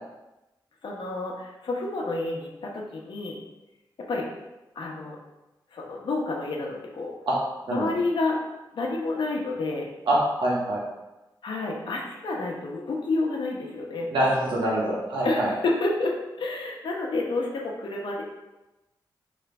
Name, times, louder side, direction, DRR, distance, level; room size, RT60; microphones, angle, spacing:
voice 1, 0.8-3.4 4.1-4.3 4.7-5.2 5.7-7.1 7.7-8.4 8.7-9.9 11.4-14.1 15.2-18.2, left 2 dB, 70° left, -1 dB, 0.9 m, -29 dB
voice 2, 10.1-10.8 14.1-15.5, right 1 dB, 75° right, -5 dB, 1.4 m, -24 dB
3.4 x 3.2 x 4.2 m, 1.0 s
cardioid pair, 95°, 8 cm